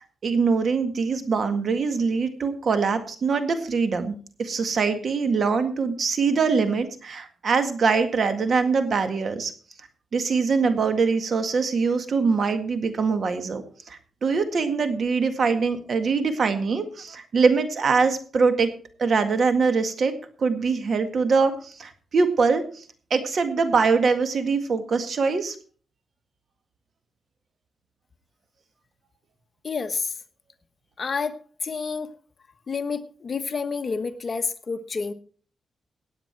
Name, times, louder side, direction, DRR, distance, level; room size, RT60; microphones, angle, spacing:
voice 1, 0.2-9.5 10.1-13.6 13.9-20.1 20.4-22.8 23.1-25.6, right 4 dB, 55° right, 9 dB, 1.9 m, -23 dB
voice 2, 29.6-30.1 31.0-32.1 32.7-35.1, left 5 dB, 45° left, 9 dB, 1.2 m, -29 dB
17.0 x 8.8 x 4.6 m, 0.41 s
cardioid pair, 100°, 0 cm